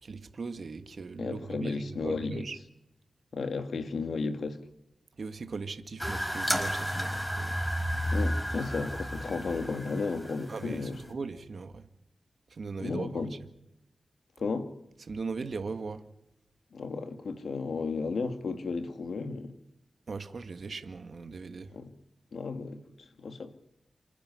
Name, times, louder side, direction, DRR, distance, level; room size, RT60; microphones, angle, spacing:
voice 1, 0.0-2.6 5.2-7.6 10.5-11.8 12.5-13.3 15.1-16.0 20.1-21.7, right 4 dB, 65° right, 1.8 m, -39 dB
voice 2, 1.2-2.5 3.3-4.6 8.1-11.0 12.8-13.3 14.4-14.7 16.7-19.5 21.7-21.9 22.3-23.6, left 4 dB, 80° left, 2.3 m, -34 dB
sound 1, 6.0-11.1, equal, 10° left, 4.9 m, -32 dB
28.5 x 10.5 x 10.0 m
cardioid pair, 65°, 0 cm